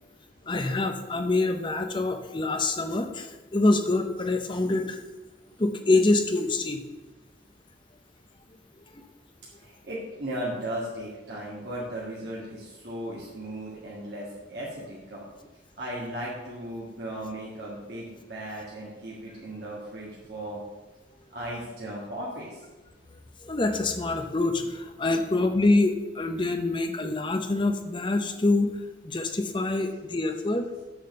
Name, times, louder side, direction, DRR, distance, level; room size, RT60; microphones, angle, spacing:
voice 1, 0.5-5.0 5.6-6.8 8.9-9.0 23.4-28.8 29.0-30.8, left 2 dB, 25° left, 7 dB, 0.6 m, -25 dB
voice 2, 9.6-15.2 15.8-20.6 21.3-22.6 28.3-28.4, right 1 dB, 60° right, -6 dB, 1.9 m, -36 dB
8.3 x 4.3 x 6.6 m, 1.2 s
head